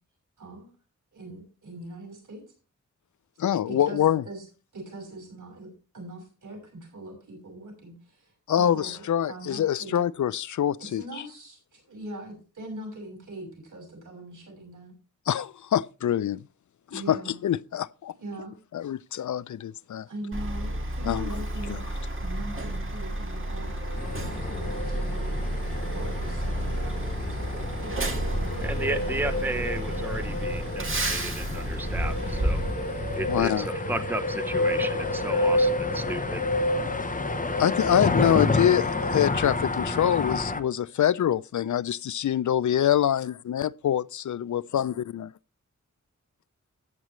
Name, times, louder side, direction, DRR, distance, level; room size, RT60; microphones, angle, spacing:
voice 1, 0.4-0.7 1.1-2.4 3.7-4.4 4.7-5.7 5.9-8.3 8.6-10.1 11.0-14.9 16.9-17.4 18.2-18.5 20.1-21.8 22.1-24.0 24.3-25.4 25.8-29.1, right 2 dB, 85° right, 6.1 m, -42 dB
voice 2, 3.4-4.2 8.5-11.0 15.3-16.4 16.9-18.1 18.7-20.1 21.1-21.4 21.7-21.8 33.3-33.7 37.6-45.3, left 10 dB, 70° left, 0.4 m, -25 dB
Truck, 20.3-33.4, right 1 dB, 40° right, 1.9 m, -31 dB
sound 1, 23.3-40.3, left 1 dB, 50° left, 3.1 m, -32 dB
sound 2, 24.0-40.6, left 3 dB, 25° left, 0.8 m, -32 dB
voice 3, 28.6-32.6 33.1-36.5, right 2 dB, 5° right, 0.7 m, -34 dB
14.0 x 9.1 x 3.1 m
wide cardioid pair, 100°, 30 cm